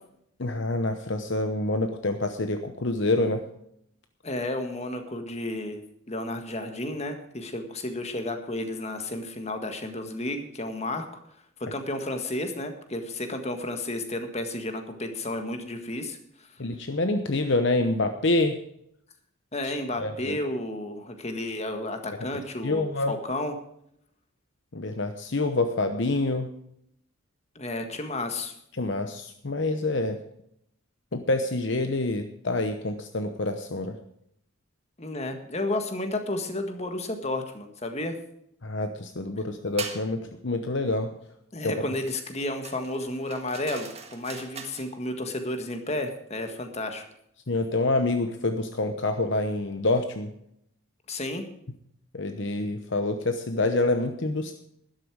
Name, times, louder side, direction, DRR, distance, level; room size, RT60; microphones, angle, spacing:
voice 1, 0.4-3.4 16.6-18.6 19.6-19.7 20.0-20.4 22.6-23.2 24.7-26.5 28.8-30.2 31.1-33.9 38.6-41.1 41.6-41.9 47.5-50.3 52.1-54.5, left 2 dB, 55° left, 7 dB, 0.9 m, -27 dB
voice 2, 4.2-5.8 6.1-11.1 11.6-16.5 19.5-23.5 27.5-28.5 35.0-38.2 41.5-47.0 51.1-51.4, left 1 dB, 30° left, 6 dB, 1.7 m, -32 dB
sound 1, 39.8-40.1 42.6-44.9, right 5 dB, 30° right, 1.6 m, -40 dB
12.5 x 12.0 x 4.8 m, 0.73 s
head